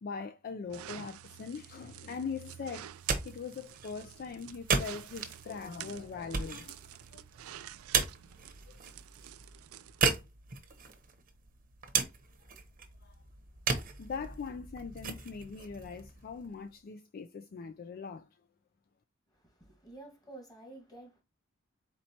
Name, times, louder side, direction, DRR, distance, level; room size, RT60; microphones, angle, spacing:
voice 1, 0.0-7.2 8.7-8.8 13.0-13.1 13.7-18.3, left 5 dB, 45° left, 0.4 m, -42 dB
sound 1, 0.7-10.0, right 10 dB, 80° right, 0.4 m, -50 dB
sound 2, 2.8-16.7, right 5 dB, 40° right, 0.8 m, -36 dB
voice 2, 19.3-21.2, right 2 dB, 20° left, 1.6 m, -51 dB
4.3 x 4.3 x 2.8 m
head